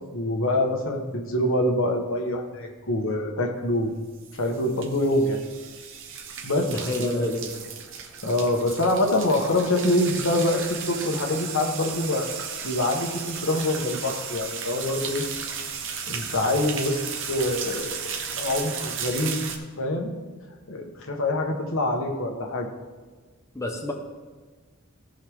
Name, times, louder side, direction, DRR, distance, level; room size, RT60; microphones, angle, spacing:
voice 1, 0.1-3.9 4.3-5.4 6.4-6.7 7.0-7.3 8.2-12.3 12.6-15.2 16.1-17.0 17.3-18.0 18.4-19.4 19.8-20.2 20.7-22.7, left 1 dB, 65° left, 2 dB, 1.4 m, -25 dB
sound 1, 3.9-19.6, right 6 dB, 65° right, 1.1 m, -35 dB
voice 2, 6.6-7.6 23.5-23.9, left 1 dB, 15° left, 1 dB, 0.9 m, -29 dB
16.5 x 5.5 x 3.7 m, 1.4 s
head